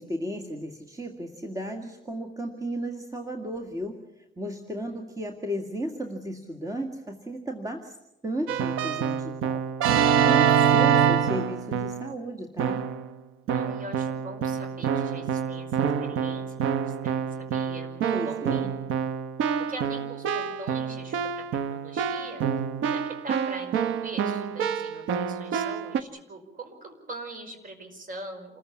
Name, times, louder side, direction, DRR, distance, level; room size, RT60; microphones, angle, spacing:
voice 1, 0.0-8.0 8.2-9.6 10.2-12.8 18.1-18.7, right 1 dB, 15° right, 4 dB, 2.1 m, -34 dB
Keyboard (musical), 8.5-12.1 12.6-13.1 13.5-26.0, right 8 dB, 85° right, 1.0 m, -26 dB
voice 2, 13.5-18.7 19.7-22.5 22.9-28.6, right 2 dB, 45° right, 7 dB, 5.4 m, -42 dB
27.5 x 14.5 x 8.6 m, 0.92 s
cardioid pair, 90°, 20 cm